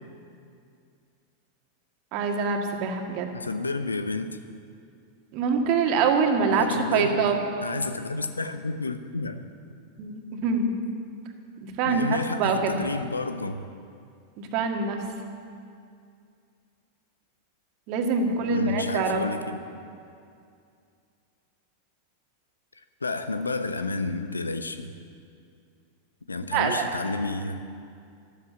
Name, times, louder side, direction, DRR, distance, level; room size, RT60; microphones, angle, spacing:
voice 1, 2.1-3.3 5.3-7.4 10.0-10.8 11.6-12.0 12.4-12.7 14.4-15.0 17.9-19.2 26.5-26.9, right 5 dB, 45° right, 3 dB, 1.9 m, -25 dB
voice 2, 3.3-4.4 6.4-7.3 7.6-9.5 11.8-13.6 18.2-19.6 23.0-24.9 26.3-27.6, left 3 dB, 80° left, 10 dB, 0.8 m, -30 dB
13.0 x 12.5 x 7.2 m, 2.4 s
figure-of-eight pair, 90°, 0 cm